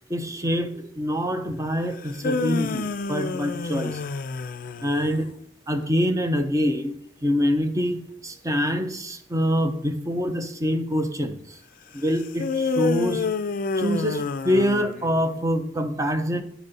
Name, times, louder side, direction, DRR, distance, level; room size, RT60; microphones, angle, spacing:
voice 1, 0.1-4.0 4.8-5.3 5.7-6.9 7.2-11.6 11.9-13.3 13.8-16.4, equal, 20° right, 6 dB, 0.7 m, -25 dB
sound 1, 2.0-5.2 12.4-15.3, left 4 dB, 50° left, 0.4 m, -28 dB
10.0 x 4.2 x 5.2 m, 0.66 s
head